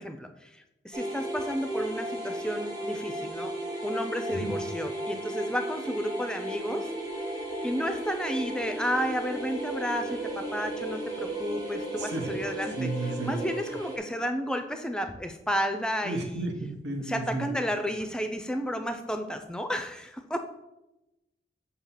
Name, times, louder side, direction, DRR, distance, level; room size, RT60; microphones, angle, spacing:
voice 1, 0.0-3.5 3.8-6.9 7.6-12.9 13.2-16.5 17.1-20.4, equal, 5° left, 7 dB, 0.4 m, -32 dB
sound 1, 0.9-14.0, right 1 dB, 25° right, 1.0 m, -35 dB
voice 2, 12.0-12.3 12.8-13.4 16.0-17.5, right 2 dB, 85° right, 3 dB, 1.0 m, -32 dB
6.7 x 2.8 x 5.7 m, 0.94 s
head